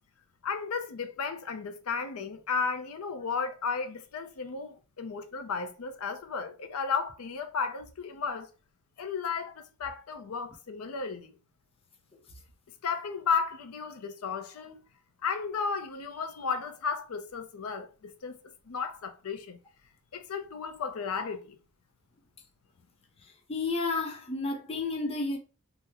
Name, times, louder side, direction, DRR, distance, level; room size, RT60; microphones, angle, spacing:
voice 1, 0.4-8.5 9.0-11.3 12.8-14.8 15.2-18.4 18.7-19.6 20.1-21.6, left 5 dB, 80° left, 0.5 m, -34 dB
voice 2, 23.5-25.4, left 3 dB, 25° left, 0.6 m, -31 dB
2.9 x 2.0 x 3.5 m
head